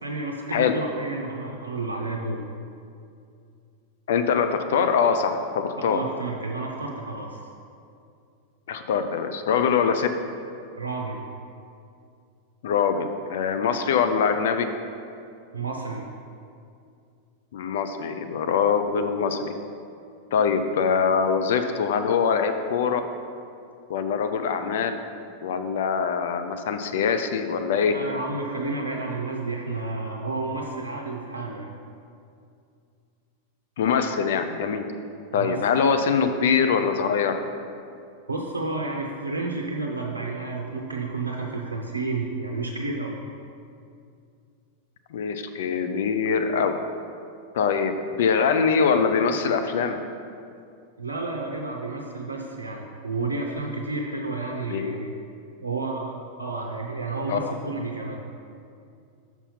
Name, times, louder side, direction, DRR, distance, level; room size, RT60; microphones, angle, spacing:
voice 1, 0.0-2.4 5.8-7.4 10.8-11.2 15.5-16.0 27.9-31.7 35.3-35.6 38.3-43.2 51.0-55.1 55.6-58.2, right 3 dB, 75° right, 0 dB, 0.6 m, -31 dB
voice 2, 4.1-6.0 8.7-10.1 12.6-14.7 17.5-19.5 20.3-23.0 23.9-25.0 25.4-27.9 33.8-34.9 35.3-37.3 45.1-46.8 47.5-50.0 54.7-55.1 57.3-57.5, left 6 dB, 55° left, 7 dB, 0.4 m, -23 dB
5.9 x 5.6 x 5.5 m, 2.4 s
figure-of-eight pair, 90°, 0 cm